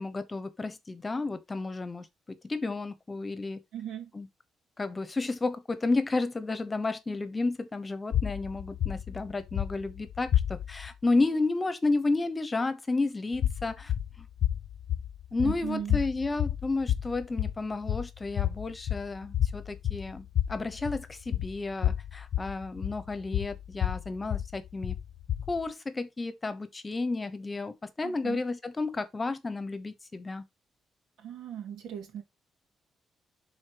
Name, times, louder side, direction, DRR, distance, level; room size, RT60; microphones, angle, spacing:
voice 1, 0.0-3.6 4.1-4.3 4.8-13.9 14.2-14.3 15.3-25.0 25.5-30.4, left 3 dB, 20° left, 1.0 m, -32 dB
voice 2, 3.7-4.1 15.4-16.0 28.0-28.4 31.2-32.2, right 10 dB, 90° right, 2.4 m, -38 dB
sound 1, 8.1-10.9 13.3-25.7, left 11 dB, 70° left, 0.5 m, -31 dB
11.5 x 4.1 x 3.1 m
cardioid pair, 125°, 0 cm